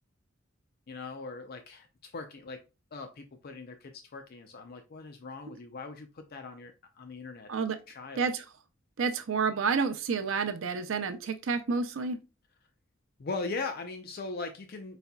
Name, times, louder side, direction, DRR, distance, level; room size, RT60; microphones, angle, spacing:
voice 1, 0.9-2.6 2.9-7.5 7.9-8.3 13.2-15.0, left 3 dB, 50° left, 0.5 m, -40 dB
voice 2, 9.0-12.2, right 5 dB, 70° right, 0.5 m, -29 dB
4.8 x 4.1 x 2.2 m
head